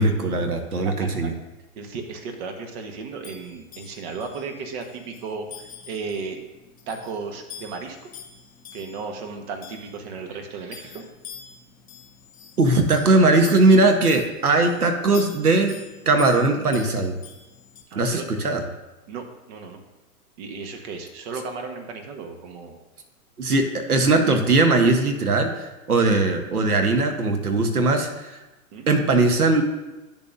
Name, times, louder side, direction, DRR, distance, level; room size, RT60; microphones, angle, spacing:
voice 1, 0.0-1.3 12.6-15.8 16.1-17.2 17.9-18.6 23.4-28.4 28.9-29.6, right 2 dB, 85° right, 5 dB, 1.2 m, -19 dB
voice 2, 0.7-1.1 1.8-6.4 6.9-8.1 8.7-11.1 17.9-18.3 19.1-19.8 20.4-22.8 28.7-28.9, right 4 dB, 45° right, 5 dB, 1.3 m, -35 dB
sound 1, 3.2-17.8, left 7 dB, 20° left, 2.1 m, -45 dB
10.0 x 6.8 x 2.6 m, 1.1 s
figure-of-eight pair, 115°, 44 cm